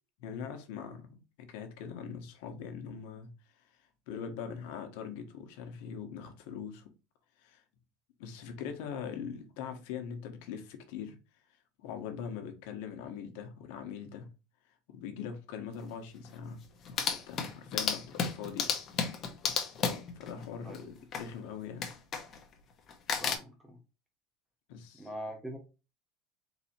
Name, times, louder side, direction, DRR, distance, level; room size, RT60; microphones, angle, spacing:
voice 1, 0.2-3.7 4.1-6.8 7.4-7.6 8.2-11.2 11.8-14.3 14.9-18.7 20.1-21.9 24.7-25.1, left 7 dB, 70° left, 1.0 m, -42 dB
sound 1, 15.8-15.9 16.2-16.3 16.6-21.3 21.8-22.5 22.9-23.4, left 6 dB, 30° left, 0.9 m, -33 dB
voice 2, 23.2-23.8 24.9-25.6, equal, 5° right, 0.7 m, -42 dB
4.1 x 2.7 x 4.2 m
supercardioid pair, 155°, 0 cm